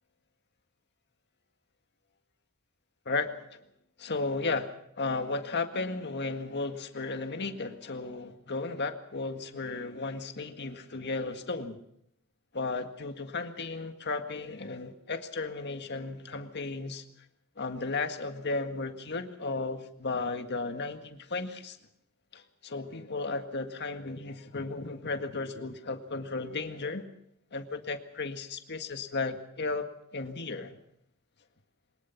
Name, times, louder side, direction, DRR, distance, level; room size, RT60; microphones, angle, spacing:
voice 1, 3.1-3.6 4.0-11.8 12.5-17.0 17.6-21.8 22.3-27.0 27.5-29.9 30.1-30.8, left 3 dB, 55° left, 7 dB, 1.8 m, -34 dB
23.0 x 20.0 x 5.9 m, 0.73 s
head